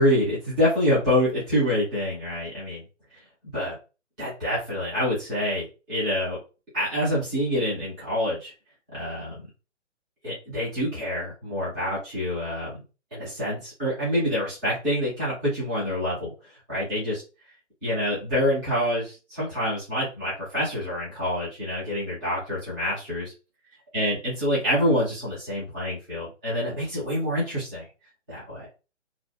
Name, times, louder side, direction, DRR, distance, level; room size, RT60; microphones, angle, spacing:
voice 1, 0.0-2.8 3.5-3.7 4.2-6.4 6.7-8.5 8.9-9.4 10.2-12.8 13.1-16.3 16.7-17.2 17.8-23.3 23.9-27.8 28.3-28.7, left 1 dB, 5° right, -11 dB, 0.5 m, -26 dB
2.4 x 2.1 x 2.6 m, 0.31 s
figure-of-eight pair, 150°, 37 cm